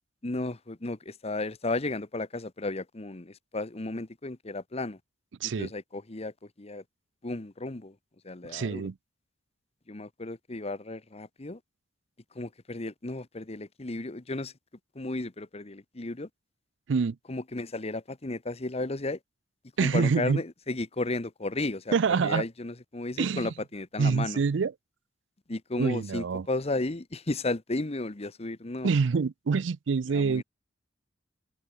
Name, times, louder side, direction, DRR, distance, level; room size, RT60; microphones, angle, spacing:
voice 1, 0.2-5.0 5.4-6.8 7.2-7.9 8.2-8.9 9.9-11.6 12.3-14.5 14.9-16.3 17.3-19.2 19.8-24.4 25.5-28.9 30.1-30.4, left 2 dB, 35° left, 1.1 m, -34 dB
voice 2, 8.5-8.9 16.9-17.2 19.8-20.4 21.9-22.4 23.2-23.5 24.0-24.7 25.8-26.5 28.8-30.4, right 5 dB, 90° right, 0.5 m, -26 dB
open air
head